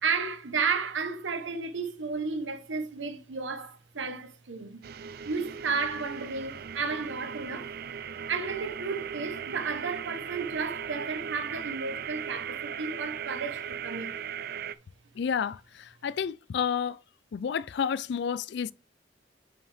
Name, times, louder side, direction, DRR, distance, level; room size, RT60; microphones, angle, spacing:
voice 1, 0.0-4.8 5.2-7.8 8.3-14.2, right 5 dB, 75° right, 1.0 m, -33 dB
sound 1, 4.8-14.8, right 8 dB, 55° right, 0.4 m, -38 dB
voice 2, 15.2-17.0 17.3-18.7, left 7 dB, 60° left, 0.4 m, -30 dB
7.3 x 5.5 x 3.3 m
head